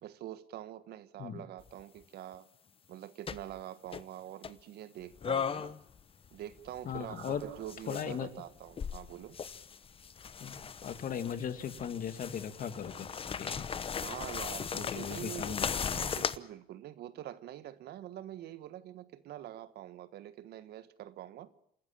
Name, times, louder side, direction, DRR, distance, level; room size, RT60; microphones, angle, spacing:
voice 1, 0.0-2.5 2.9-5.7 6.3-9.4 14.0-15.6 15.9-21.5, right 12 dB, 70° right, 1.5 m, -45 dB
sound 1, 1.6-1.8 3.3-3.6 3.9-4.0 4.4-4.5 5.2-6.0 6.2-8.1 8.7-16.4, left 7 dB, 35° left, 1.0 m, -37 dB
voice 2, 6.9-7.4 7.9-8.3 10.4-13.1 13.4-13.7 14.7-16.1, left 8 dB, 55° left, 2.3 m, -38 dB
28.5 x 13.0 x 9.0 m
cardioid pair, 110°, 17 cm